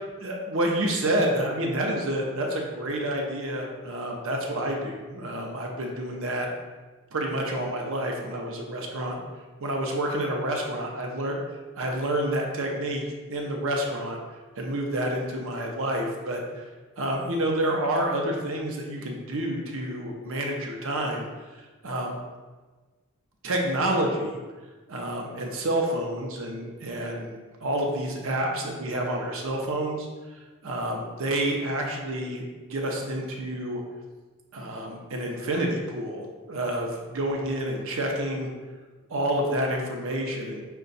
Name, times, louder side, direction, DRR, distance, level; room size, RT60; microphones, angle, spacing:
voice 1, 0.2-6.5 7.1-9.1 9.6-11.4 11.8-13.0 13.3-14.2 14.6-16.7 17.0-21.3 21.5-22.2 23.4-24.4 24.9-27.4 27.6-30.1 30.3-32.4 32.7-33.8 34.5-38.5 39.1-40.6, right 1 dB, 65° right, 1 dB, 0.7 m, -29 dB
5.5 x 2.3 x 3.9 m, 1.3 s
head